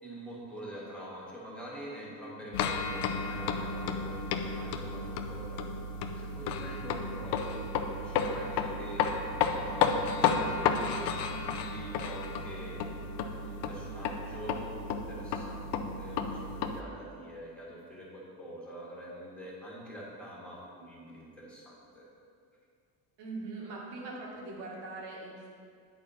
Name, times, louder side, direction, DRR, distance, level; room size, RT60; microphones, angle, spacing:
voice 1, 0.0-5.6 6.1-9.1 9.5-11.0 11.4-12.8 13.4-22.1, right 1 dB, 5° left, -6 dB, 1.7 m, -45 dB
sound 1, 2.5-16.8, left 5 dB, 75° left, 0.6 m, -32 dB
voice 2, 23.2-25.5, right 3 dB, 75° right, -3 dB, 1.8 m, -41 dB
8.7 x 4.4 x 4.1 m, 2.2 s
cardioid pair, 120°, 41 cm